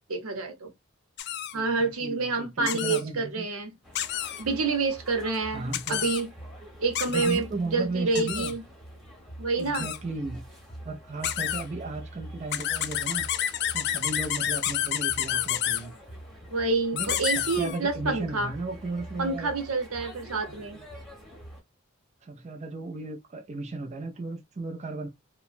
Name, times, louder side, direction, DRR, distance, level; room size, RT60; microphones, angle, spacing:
voice 1, 0.1-0.7 1.5-3.7 4.4-6.3 6.8-7.5 7.7-8.6 9.4-9.9 16.5-18.5 19.2-20.8, right 3 dB, 85° right, 0.8 m, -28 dB
sound 1, 1.2-1.5 2.7-3.0 4.0-4.4 5.7-6.2 7.0-7.4 8.2-8.5 9.7-10.0 11.2-11.6 12.5-15.8 17.0-17.8, left 11 dB, 50° left, 0.3 m, -29 dB
voice 2, 1.5-3.5 5.5-6.1 7.1-8.5 9.6-10.4 10.8-13.2 13.7-15.9 16.9-19.5 22.2-25.1, right 3 dB, 35° right, 0.4 m, -35 dB
sound 2, 3.8-21.6, right 1 dB, ahead, 1.0 m, -45 dB
2.9 x 2.1 x 2.5 m
head